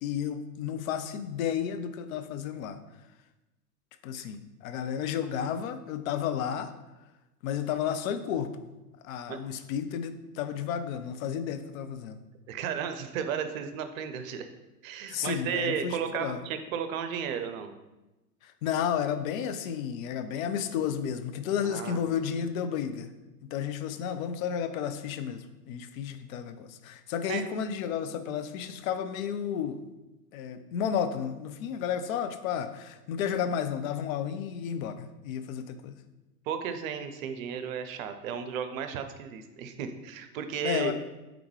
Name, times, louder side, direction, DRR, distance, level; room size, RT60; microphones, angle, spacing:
voice 1, 0.0-2.8 4.0-6.7 7.4-8.7 9.0-12.2 15.1-16.4 18.4-23.1 23.4-29.8 30.3-36.0 40.6-40.9, left 8 dB, 60° left, 10 dB, 0.5 m, -32 dB
voice 2, 12.5-14.5 14.8-17.7 21.6-22.0 27.3-27.4 36.5-40.9, right 8 dB, 60° right, 8 dB, 0.6 m, -34 dB
3.5 x 3.5 x 3.2 m, 1.0 s
hypercardioid pair, 95°, 47 cm